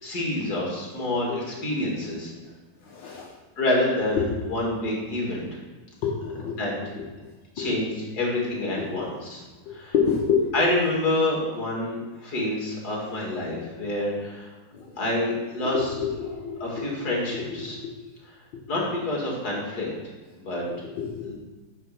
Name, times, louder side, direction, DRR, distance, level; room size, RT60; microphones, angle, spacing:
voice 1, 0.0-2.3 3.6-5.6 6.6-6.7 7.6-9.4 9.7-9.9 10.5-14.5 15.0-15.9 16.6-17.8 18.7-19.9 20.4-20.6 21.2-21.3, left 1 dB, 55° left, -3 dB, 2.8 m, -27 dB
voice 2, 2.8-3.3 4.2-4.3 6.0-6.6 7.0-7.1 7.6-7.7 8.8-9.0 9.7-10.5 12.4-12.5 14.7-14.8 15.6-17.6 21.0-21.3, left 6 dB, 75° left, -4 dB, 1.8 m, -28 dB
9.3 x 4.4 x 5.9 m, 1.2 s
omnidirectional pair, 2.0 m